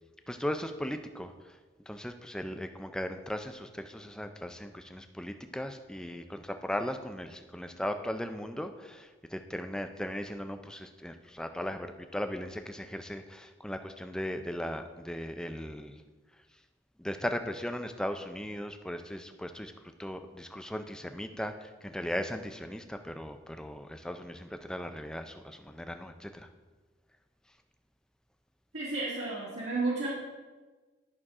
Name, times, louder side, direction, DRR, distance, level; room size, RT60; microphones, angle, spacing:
voice 1, 0.3-1.6 1.9-16.0 17.0-26.5, equal, 5° left, 7 dB, 0.4 m, -37 dB
voice 2, 28.7-30.1, right 3 dB, 75° right, -9 dB, 2.0 m, -32 dB
11.0 x 6.3 x 3.6 m, 1.3 s
head